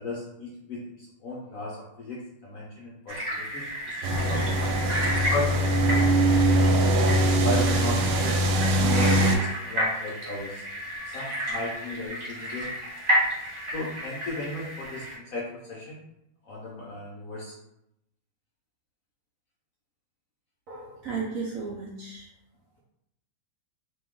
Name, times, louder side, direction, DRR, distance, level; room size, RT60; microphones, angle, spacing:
voice 1, 0.0-4.8 5.3-7.1 7.4-8.4 8.8-10.6 11.0-12.7 13.7-16.0 16.4-17.6, left 1 dB, 70° left, -4 dB, 0.8 m, -36 dB
sound 1, 3.1-15.2, equal, 30° right, 0.8 m, -31 dB
sound 2, 4.0-9.4, right 1 dB, 85° right, 1.3 m, -22 dB
voice 2, 20.7-22.3, right 4 dB, 65° right, -3 dB, 0.8 m, -34 dB
3.0 x 3.0 x 3.6 m, 0.82 s
omnidirectional pair, 2.0 m